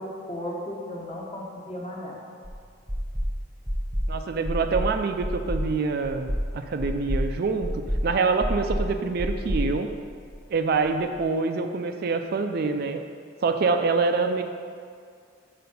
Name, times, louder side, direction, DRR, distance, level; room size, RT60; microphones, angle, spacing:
voice 1, 0.0-2.2, left 1 dB, 30° left, -3 dB, 1.2 m, -35 dB
sound 1, 2.4-2.5 2.9-3.3 3.7-4.1 4.4-4.9 5.2-5.7 6.0-6.5 6.8-7.3 7.6-8.0 8.4-8.9 9.2-10.4, equal, ahead, 0.6 m, -27 dB
voice 2, 4.1-9.9 10.5-13.0 13.4-14.4, right 4 dB, 55° right, 7 dB, 0.4 m, -26 dB
5.9 x 5.6 x 5.4 m, 2.2 s
head